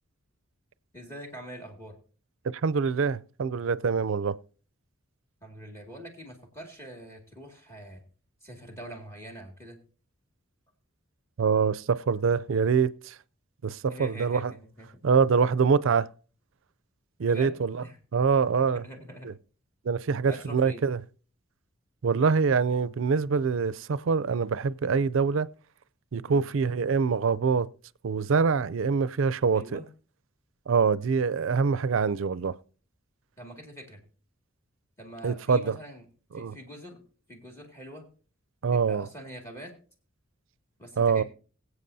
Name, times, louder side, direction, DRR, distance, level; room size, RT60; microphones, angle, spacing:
voice 1, 0.9-2.0 5.4-8.0 8.4-9.8 13.9-14.9 17.2-18.0 18.6-19.3 20.2-20.9 26.3-26.4 29.5-29.8 33.4-34.0 35.0-36.0 36.3-37.0 37.3-38.0 38.7-39.7 40.8-41.2, right 1 dB, 15° left, 2.1 m, -44 dB
voice 2, 2.6-4.4 11.4-13.2 13.6-14.5 15.0-16.1 17.2-17.8 18.1-18.8 19.2-19.3 19.8-21.0 22.0-25.5 26.1-27.7 28.0-29.8 30.7-32.5 35.2-35.7 36.3-36.6 38.6-39.1 41.0-41.2, right 5 dB, 70° right, 0.4 m, -25 dB
23.5 x 8.1 x 2.7 m
head